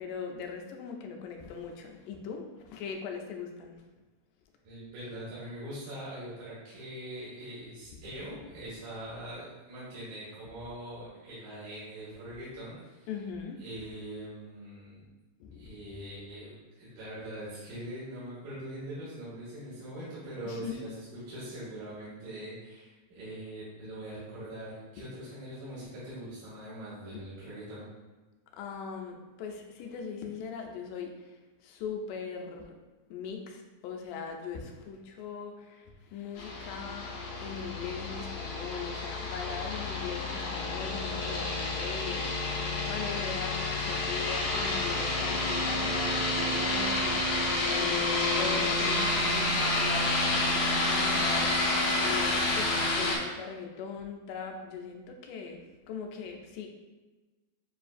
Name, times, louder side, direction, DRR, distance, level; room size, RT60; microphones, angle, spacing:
voice 1, 0.0-3.8 13.1-13.6 15.4-15.8 20.5-20.8 28.5-32.7 33.1-56.7, left 6 dB, 90° left, 3 dB, 2.1 m, -40 dB
voice 2, 4.6-13.1 13.6-15.1 15.5-27.9, right 1 dB, 75° right, -10 dB, 2.6 m, -42 dB
sound 1, 36.4-53.2, left 2 dB, 70° left, 1.9 m, -29 dB
6.9 x 2.5 x 2.4 m, 1.2 s
omnidirectional pair, 3.6 m